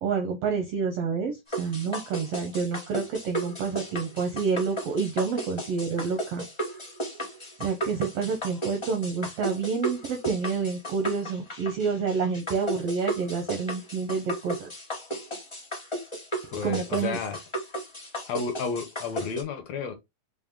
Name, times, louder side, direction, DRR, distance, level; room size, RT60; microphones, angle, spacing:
voice 1, 0.0-6.4 7.6-14.7 16.6-17.2, right 5 dB, 75° right, 1.4 m, -28 dB
sound 1, 1.5-19.4, right 1 dB, 20° left, 0.8 m, -34 dB
voice 2, 16.5-17.4 18.3-19.9, left 6 dB, 70° left, 1.8 m, -32 dB
5.5 x 2.6 x 3.5 m
omnidirectional pair, 3.6 m